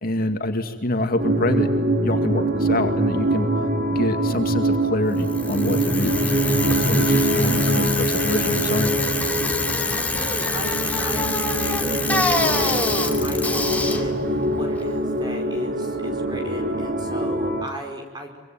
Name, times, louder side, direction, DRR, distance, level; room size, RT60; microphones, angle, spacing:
voice 1, 0.0-1.7 2.0-3.5 3.9-6.1 6.8-8.9, left 1 dB, 55° left, 5 dB, 2.4 m, -25 dB
sound 1, 1.2-17.7, right 1 dB, 55° right, 2.8 m, -24 dB
Bicycle, 5.2-15.3, left 3 dB, 10° left, 2.6 m, -26 dB
voice 2, 7.4-7.9 9.8-18.4, equal, 25° right, 4 dB, 5.4 m, -36 dB
25.5 x 25.0 x 9.1 m, 1.3 s
head